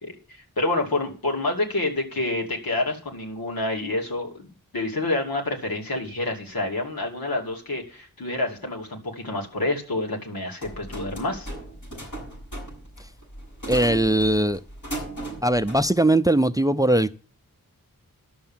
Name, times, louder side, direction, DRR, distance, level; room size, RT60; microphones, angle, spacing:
voice 1, 0.0-4.5 4.7-11.5, left 2 dB, 85° left, 2.6 m, -28 dB
sound 1, 10.6-16.0, right 1 dB, 60° left, 7.2 m, -37 dB
voice 2, 13.7-14.6 15.4-17.2, right 1 dB, 10° right, 0.5 m, -20 dB
11.0 x 6.9 x 7.3 m
wide cardioid pair, 60°, 34 cm